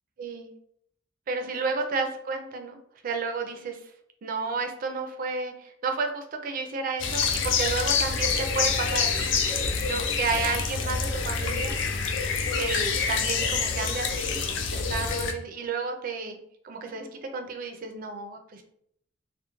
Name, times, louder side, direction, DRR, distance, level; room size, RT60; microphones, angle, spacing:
voice 1, 0.2-0.5 1.3-2.8 3.0-3.8 4.2-9.4 9.9-11.7 12.5-14.4 14.7-16.4 16.6-18.6, right 4 dB, 45° right, 4 dB, 0.3 m, -31 dB
sound 1, 7.0-15.3, left 5 dB, 70° left, 0.3 m, -27 dB
2.3 x 2.0 x 3.0 m, 0.70 s
head